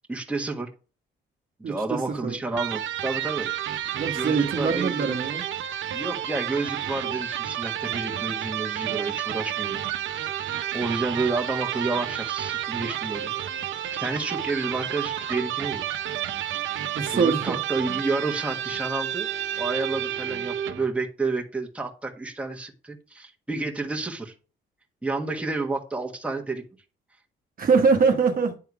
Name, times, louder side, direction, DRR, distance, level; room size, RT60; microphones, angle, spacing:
voice 1, 0.1-0.7 1.6-3.5 4.1-5.2 5.9-9.8 10.1-10.4 10.7-13.7 14.0-15.8 17.1-19.3 19.6-24.3 25.0-26.6, right 3 dB, 5° right, 1.5 m, -30 dB
voice 2, 1.6-2.4 3.9-5.4 16.9-17.6 27.6-28.6, right 5 dB, 45° right, 1.1 m, -23 dB
Electric guitar, 2.5-20.9, right 11 dB, 75° right, 0.9 m, -30 dB
9.6 x 3.6 x 4.8 m
cardioid pair, 90°, 20 cm